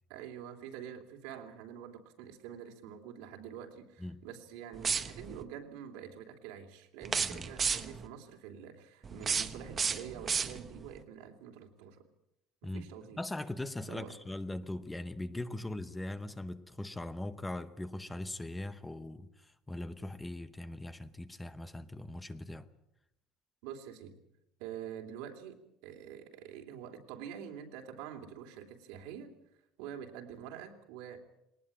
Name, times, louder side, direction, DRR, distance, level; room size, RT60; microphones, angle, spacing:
voice 1, 0.1-12.1 12.6-13.2 13.9-14.2 15.5-15.6 23.6-24.2 24.6-29.3 29.8-31.2, right 9 dB, 85° right, 3 dB, 3.2 m, -46 dB
sound 1, 4.7-5.4 7.0-8.1 9.0-10.9, right 6 dB, 20° right, 0.9 m, -33 dB
voice 2, 7.2-7.5 12.6-12.9 13.2-22.7, left 1 dB, 5° left, 13 dB, 0.8 m, -40 dB
21.0 x 19.0 x 8.6 m, 0.86 s
cardioid pair, 160°, 0 cm